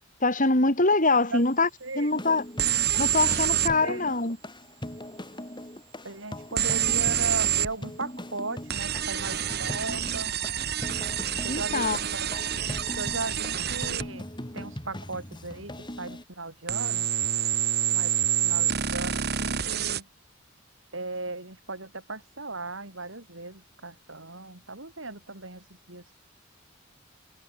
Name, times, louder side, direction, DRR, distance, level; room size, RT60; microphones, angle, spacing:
voice 1, 0.2-1.7 2.0-2.4 3.0-4.4 11.5-12.0, left 3 dB, 40° left, 4.5 m, -23 dB
sound 1, 2.1-16.2, left 1 dB, 25° left, 5.6 m, -40 dB
sound 2, 2.6-3.8 6.6-7.7 8.7-14.1 16.7-20.0, right 10 dB, 55° right, 2.6 m, -27 dB
voice 2, 3.5-4.0 6.0-10.3 11.4-12.3 12.5-12.7 13.0-14.3 14.5-17.1 17.9-20.1 20.9-26.1, right 3 dB, 75° right, 7.8 m, -37 dB
head